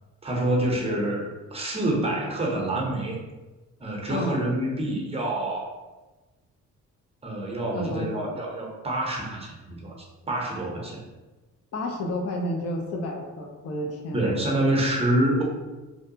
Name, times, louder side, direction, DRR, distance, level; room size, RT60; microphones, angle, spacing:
voice 1, 0.2-1.2 1.5-3.2 3.8-5.7 7.2-9.9 10.3-11.0 14.1-15.4, right 1 dB, 20° right, -1 dB, 0.7 m, -26 dB
voice 2, 4.1-4.4 7.7-8.4 11.7-14.4, left 1 dB, 55° left, 1 dB, 0.6 m, -31 dB
2.6 x 2.2 x 2.7 m, 1.2 s
cardioid pair, 90°, 30 cm